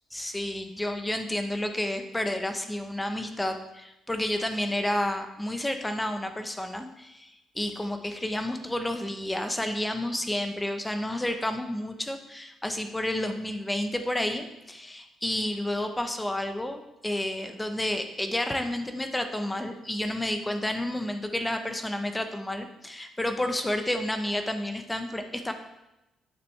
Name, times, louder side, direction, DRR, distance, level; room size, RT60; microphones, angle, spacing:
voice 1, 0.1-25.5, left 1 dB, 10° left, 6 dB, 0.8 m, -30 dB
9.2 x 6.7 x 3.3 m, 0.93 s
cardioid pair, 90°, 0 cm